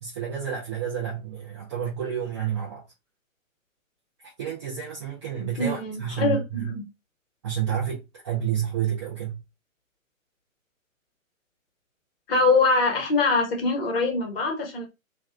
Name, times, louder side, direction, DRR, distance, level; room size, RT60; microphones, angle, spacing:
voice 1, 0.0-2.8 4.4-6.7 7.4-9.4, right 9 dB, 20° right, 0.4 m, -30 dB
voice 2, 5.6-6.8 12.3-14.9, left 3 dB, 45° left, 1.1 m, -23 dB
2.5 x 2.2 x 2.2 m
figure-of-eight pair, 115°, 40 cm